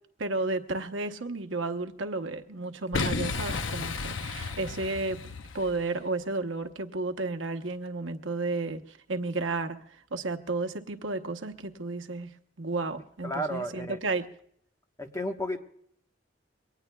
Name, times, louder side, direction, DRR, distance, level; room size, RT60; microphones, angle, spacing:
voice 1, 0.2-9.8 10.1-14.3, right 3 dB, 80° right, 7 dB, 1.0 m, -32 dB
Boom, 2.9-5.9, left 4 dB, 80° left, 0.8 m, -33 dB
voice 2, 13.2-14.0 15.0-15.6, equal, 15° left, 4 dB, 1.2 m, -32 dB
23.5 x 18.5 x 2.3 m, 0.66 s
head